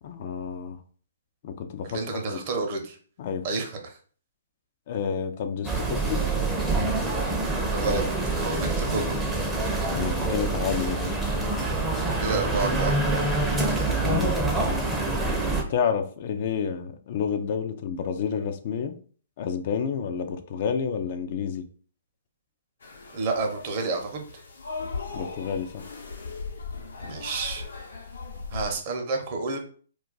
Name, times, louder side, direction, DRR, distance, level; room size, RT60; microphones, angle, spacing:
voice 1, 0.0-0.8 1.4-2.4 3.2-3.5 4.9-6.2 9.9-11.2 14.0-14.4 15.7-19.0 19.4-21.7 25.1-25.9, left 7 dB, 50° left, 7 dB, 0.4 m, -30 dB
voice 2, 1.8-3.0 3.4-4.0 7.7-8.0 8.4-9.2 12.2-13.0 23.1-24.3 27.0-27.7 28.5-29.6, right 3 dB, 45° right, 3 dB, 0.7 m, -29 dB
sound 1, 5.6-15.6, right 2 dB, 10° right, 0.6 m, -26 dB
sound 2, 22.8-28.7, left 4 dB, 75° left, 0.8 m, -38 dB
2.3 x 2.2 x 3.8 m, 0.44 s
hypercardioid pair, 130°, 0 cm